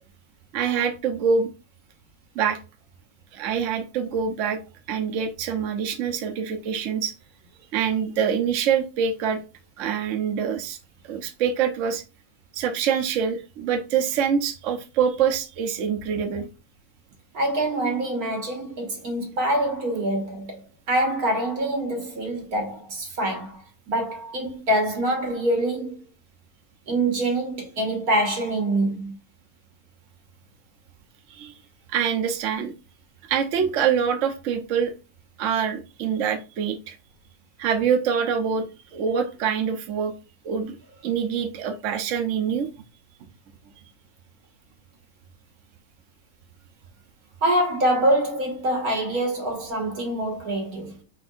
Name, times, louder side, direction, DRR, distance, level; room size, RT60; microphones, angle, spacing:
voice 1, 0.5-1.5 2.3-2.6 3.3-4.6 4.9-7.1 7.7-9.4 9.8-10.8 11.0-12.0 12.5-16.5 31.3-31.6 31.9-32.7 33.3-34.9 35.4-37.0 37.6-38.7 38.9-40.1 40.4-40.8 41.0-42.7, right 7 dB, 65° right, 1.0 m, -25 dB
voice 2, 17.3-20.6 20.9-23.6 23.9-25.9 26.9-29.1 47.4-51.0, right 1 dB, 90° right, 2.0 m, -25 dB
4.7 x 4.3 x 2.4 m
omnidirectional pair, 1.5 m